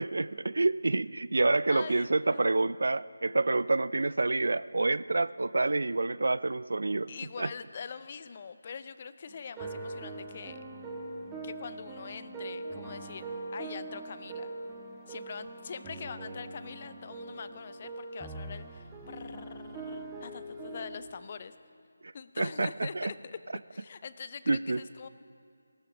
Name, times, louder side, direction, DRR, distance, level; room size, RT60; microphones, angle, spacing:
voice 1, 0.0-7.1 7.4-7.5 22.0-23.1 24.5-24.8, right 2 dB, 65° right, 18 dB, 0.4 m, -28 dB
voice 2, 1.7-2.7 7.1-10.6 11.4-14.5 15.1-21.5 22.1-23.4 23.7-25.1, left 6 dB, 35° left, 13 dB, 0.5 m, -43 dB
sound 1, 9.3-21.0, right 2 dB, 10° right, 1.4 m, -42 dB
18.0 x 13.0 x 5.0 m, 2.3 s
figure-of-eight pair, 160°, 0 cm